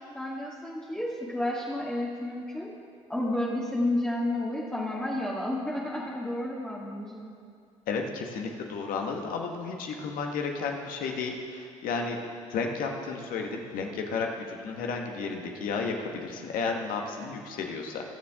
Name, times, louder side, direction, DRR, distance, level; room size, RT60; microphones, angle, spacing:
voice 1, 0.1-2.7 3.1-7.3, left 1 dB, 5° left, -6 dB, 2.0 m, -31 dB
voice 2, 7.9-12.2 12.5-18.0, left 4 dB, 65° left, 2 dB, 1.5 m, -32 dB
21.0 x 7.2 x 3.7 m, 2.2 s
hypercardioid pair, 55°, 16 cm